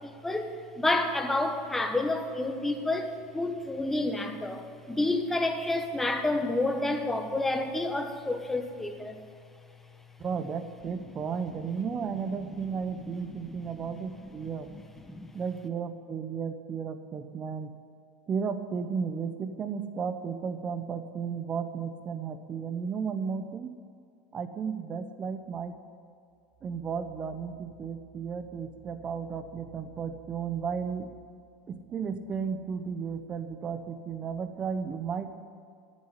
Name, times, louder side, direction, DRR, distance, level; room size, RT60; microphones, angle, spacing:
voice 1, 0.0-9.2 11.2-11.3 11.6-11.7 13.3-13.6 14.2-14.8 15.1-15.3, left 2 dB, 10° left, 5 dB, 1.2 m, -30 dB
voice 2, 10.2-14.7 15.3-17.7 18.3-23.7 24.3-25.8 26.6-31.1 31.7-35.3, right 6 dB, 25° right, 9 dB, 1.0 m, -34 dB
9.8 x 9.5 x 10.0 m, 2.4 s
supercardioid pair, 130°, 4 cm